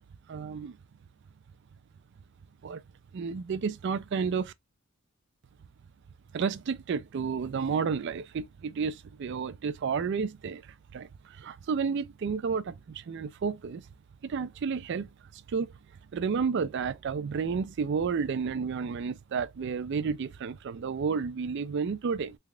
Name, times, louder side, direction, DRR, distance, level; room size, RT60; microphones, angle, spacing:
voice 1, 0.3-0.8 2.6-2.8 3.1-4.5 6.3-10.6 10.9-13.8 14.2-15.7 16.1-22.4, right 5 dB, 55° right, 0.4 m, -31 dB
3.3 x 2.3 x 3.7 m
head